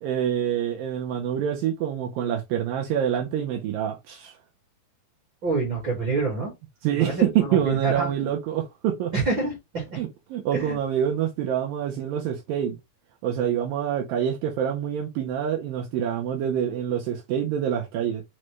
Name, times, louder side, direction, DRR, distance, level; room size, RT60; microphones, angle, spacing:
voice 1, 0.0-4.3 6.8-9.1 10.0-12.8 13.2-18.2, right 9 dB, 80° right, 2.0 m, -26 dB
voice 2, 5.4-6.5 6.9-8.1 9.1-10.0 10.5-10.8, right 3 dB, 55° right, 1.3 m, -27 dB
6.3 x 2.2 x 3.0 m
omnidirectional pair, 4.7 m